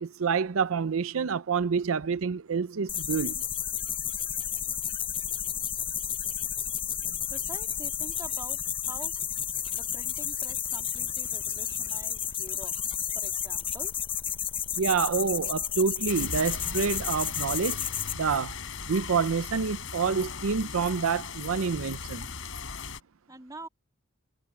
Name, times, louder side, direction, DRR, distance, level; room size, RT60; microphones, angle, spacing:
voice 1, 0.0-3.4 14.8-17.9 18.1-18.6 18.9-22.3, right 5 dB, 80° right, 0.6 m, -28 dB
sound 1, 2.9-18.1, left 9 dB, 25° left, 0.6 m, -32 dB
voice 2, 7.3-8.6 8.9-9.1 9.7-12.7 13.1-13.9 23.3-23.7, right 2 dB, 15° right, 2.4 m, -46 dB
sound 2, 16.1-23.0, left 5 dB, 75° left, 3.5 m, -38 dB
head